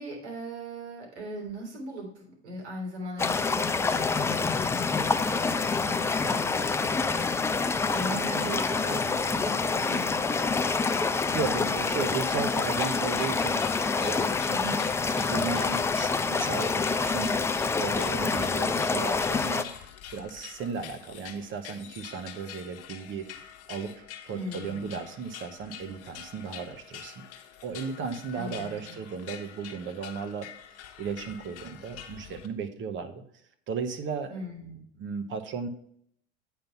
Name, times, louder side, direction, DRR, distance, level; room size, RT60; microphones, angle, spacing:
voice 1, 0.0-7.4 7.9-11.9 14.5-14.9 24.3-25.0 28.3-28.8 34.3-34.8, right 1 dB, 75° right, -1 dB, 3.6 m, -39 dB
sound 1, 3.2-19.6, left 4 dB, 10° left, 0.3 m, -27 dB
voice 2, 11.3-13.6 13.9-14.4 15.1-17.4 17.8-27.2 27.6-30.5 31.0-33.2 33.7-34.3 35.0-35.7, right 5 dB, 35° right, 9 dB, 1.0 m, -35 dB
sound 2, 12.7-32.5, left 9 dB, 45° left, 1.2 m, -45 dB
8.6 x 4.0 x 5.6 m, 0.68 s
hypercardioid pair, 90°, 34 cm